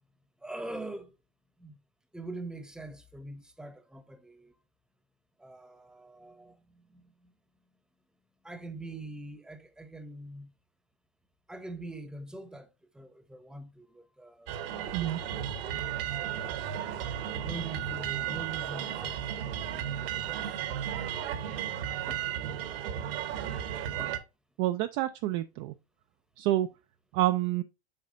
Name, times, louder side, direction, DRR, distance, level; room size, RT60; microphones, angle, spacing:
voice 1, 0.4-1.2 1.6-1.8 2.1-4.5 5.4-7.3 8.4-10.5 11.5-14.8 17.4-21.3 22.1-22.3 23.3-23.4 23.8-24.2, right 2 dB, ahead, 0.8 m, -44 dB
sound 1, 14.5-24.2, right 10 dB, 60° right, 1.1 m, -34 dB
voice 2, 24.6-25.7 26.4-26.7 27.1-27.6, right 15 dB, 35° right, 0.4 m, -28 dB
7.5 x 4.8 x 2.6 m
hypercardioid pair, 110°, 32 cm